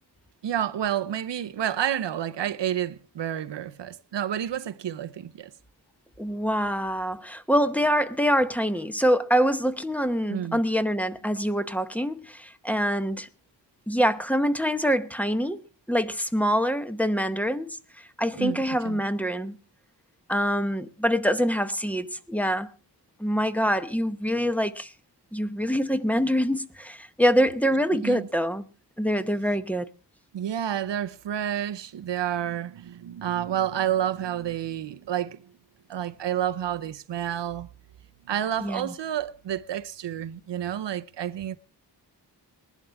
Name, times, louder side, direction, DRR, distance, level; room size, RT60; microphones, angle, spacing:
voice 1, 0.4-5.5 10.3-10.6 18.4-19.0 28.0-28.3 30.3-35.5 35.9-37.7 38.3-41.6, right 10 dB, 85° right, 0.8 m, -30 dB
voice 2, 6.2-13.3 13.9-15.6 15.9-17.8 18.2-19.6 20.3-22.7 23.2-24.9 25.3-28.6 29.0-29.9 38.6-38.9, equal, 5° left, 0.8 m, -25 dB
20.5 x 11.5 x 3.4 m
wide cardioid pair, 120°, 42 cm